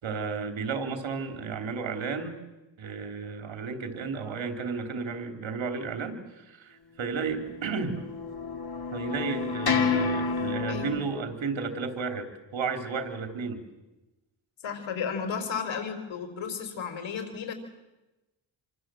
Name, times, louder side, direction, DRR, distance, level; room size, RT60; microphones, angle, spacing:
voice 1, 0.0-2.3 2.8-8.0 8.9-13.6, right 5 dB, 85° right, 6 dB, 3.6 m, -33 dB
sound 1, 7.4-11.0, left 5 dB, 55° left, 3.1 m, -29 dB
voice 2, 10.7-11.0 14.6-17.5, left 6 dB, 85° left, 7 dB, 4.8 m, -33 dB
27.5 x 25.0 x 7.8 m, 1.0 s
cardioid pair, 55°, 45 cm